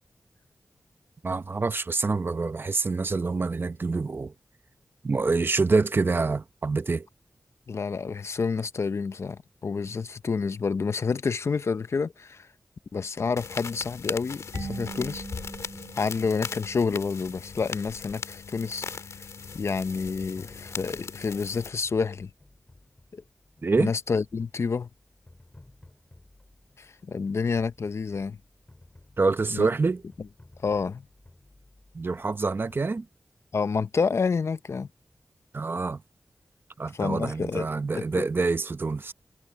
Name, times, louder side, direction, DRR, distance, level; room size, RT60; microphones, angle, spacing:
voice 1, 1.2-4.3 5.0-7.1 23.6-23.9 29.2-30.0 31.9-33.1 35.5-36.0 36.8-39.1, right 3 dB, 45° right, 0.8 m, -26 dB
voice 2, 7.7-12.5 12.9-15.2 16.0-18.8 19.5-22.3 23.1-23.2 23.8-24.9 26.8-28.4 29.5-29.7 30.6-31.0 33.5-34.9 36.9-37.7 37.9-38.3, left 5 dB, 65° left, 0.6 m, -29 dB
sound 1, 13.4-21.7, left 5 dB, 90° left, 2.4 m, -38 dB
Marimba xylophone / Wood, 14.5-17.3, right 5 dB, 80° right, 0.8 m, -42 dB
sound 2, 19.4-33.0, left 2 dB, 25° left, 5.5 m, -56 dB
wide cardioid pair, 90°, 5 cm